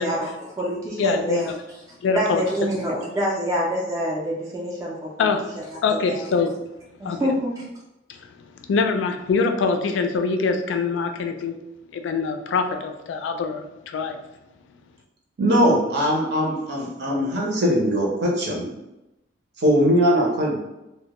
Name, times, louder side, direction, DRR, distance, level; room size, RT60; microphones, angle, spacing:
voice 1, 0.0-1.5 2.1-6.2 7.0-7.7, equal, 20° right, -4 dB, 0.3 m, -27 dB
voice 2, 1.0-1.6 2.0-2.4 5.2-5.4 5.8-6.5 7.0-7.2 8.1-8.3 8.7-11.6 11.9-14.2, left 4 dB, 80° left, 6 dB, 0.3 m, -24 dB
voice 3, 15.4-18.7 19.6-20.6, equal, 60° right, -2 dB, 0.6 m, -20 dB
2.1 x 2.1 x 2.8 m, 0.95 s
head